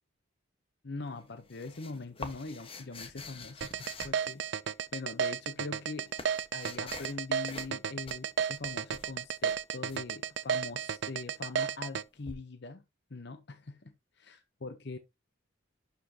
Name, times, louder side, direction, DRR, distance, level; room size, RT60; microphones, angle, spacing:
voice 1, 0.8-4.4 4.9-6.1 6.5-12.8 13.1-15.0, left 3 dB, 55° left, 0.8 m, -42 dB
sound 1, 1.1-4.9 5.6-7.2 7.5-7.8 8.0-10.0 12.3-12.4, left 3 dB, 25° left, 1.3 m, -46 dB
sound 2, 3.6-12.0, right 7 dB, 60° right, 0.4 m, -32 dB
11.5 x 5.7 x 2.8 m
head